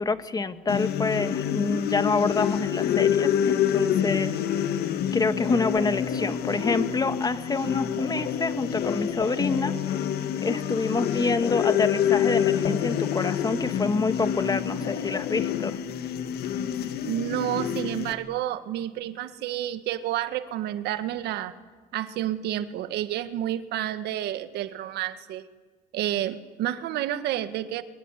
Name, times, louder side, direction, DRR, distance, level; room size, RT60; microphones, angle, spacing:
voice 1, 0.0-4.4 5.1-9.7 10.4-15.8, left 3 dB, 20° left, 11 dB, 1.5 m, -27 dB
sound 1, 0.7-18.1, left 9 dB, 70° left, 1.7 m, -27 dB
sound 2, 5.4-15.7, left 7 dB, 50° left, 3.0 m, -40 dB
voice 2, 17.1-21.5 21.9-25.4 25.9-27.8, right 12 dB, 80° right, 11 dB, 1.7 m, -30 dB
24.0 x 23.5 x 9.9 m, 1.4 s
cardioid pair, 110°, 17 cm